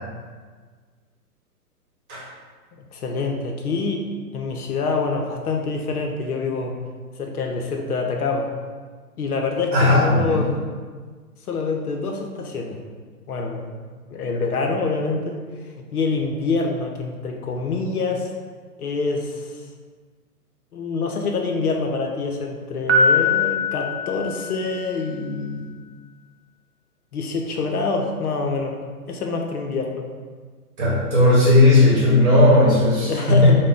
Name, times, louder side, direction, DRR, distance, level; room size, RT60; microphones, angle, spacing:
voice 1, 2.9-4.0 4.3-6.7 7.2-8.5 9.2-10.5 11.5-12.8 13.3-13.6 14.1-15.4 15.9-18.3 18.8-19.6 20.7-25.8 27.1-28.7 29.1-30.0 33.1-33.5, left 4 dB, 70° left, 2 dB, 0.6 m, -26 dB
voice 2, 9.7-10.4 30.8-33.5, left 2 dB, 20° right, -8 dB, 1.0 m, -15 dB
Piano, 22.9-25.0, left 2 dB, 45° right, 0.4 m, -21 dB
3.1 x 2.0 x 3.6 m, 1.5 s
figure-of-eight pair, 125°, 46 cm